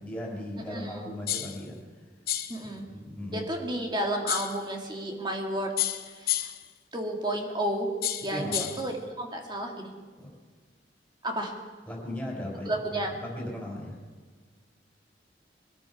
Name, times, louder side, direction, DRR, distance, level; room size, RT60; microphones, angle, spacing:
voice 1, 0.0-1.8 2.6-3.4 8.3-8.7 10.2-10.3 11.9-14.0, left 1 dB, 5° left, -3 dB, 5.3 m, -37 dB
voice 2, 0.7-1.1 2.5-2.8 3.3-5.7 6.0-6.5 6.9-7.9 8.2-9.9 11.2-11.5 12.7-13.1, right 1 dB, 25° right, 2 dB, 2.1 m, -32 dB
sound 1, 1.3-1.6 2.3-2.6 4.3-4.6 5.8-6.7 8.0-8.9, left 12 dB, 55° left, 0.8 m, -30 dB
22.0 x 12.5 x 4.9 m, 1.5 s
head